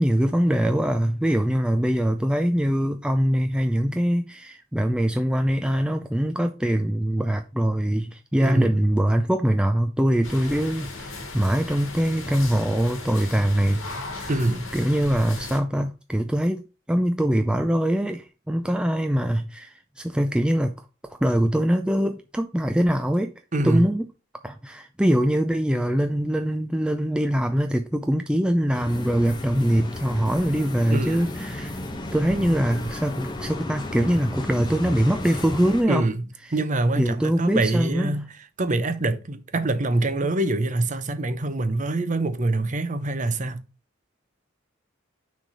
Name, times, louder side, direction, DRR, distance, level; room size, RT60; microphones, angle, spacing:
voice 1, 0.0-13.8 14.1-14.3 14.7-16.6 16.9-20.8 21.0-23.3 23.6-24.1 24.4-31.8 32.1-36.1 37.0-38.2, equal, 5° right, 0.3 m, -23 dB
voice 2, 8.4-8.8 14.3-14.8 23.5-23.9 30.9-31.2 35.9-38.3 38.6-43.6, right 2 dB, 40° right, 0.7 m, -25 dB
sound 1, 10.2-15.6, left 2 dB, 80° left, 2.0 m, -36 dB
sound 2, 28.7-35.8, left 1 dB, 20° left, 0.9 m, -34 dB
6.2 x 3.4 x 5.4 m
head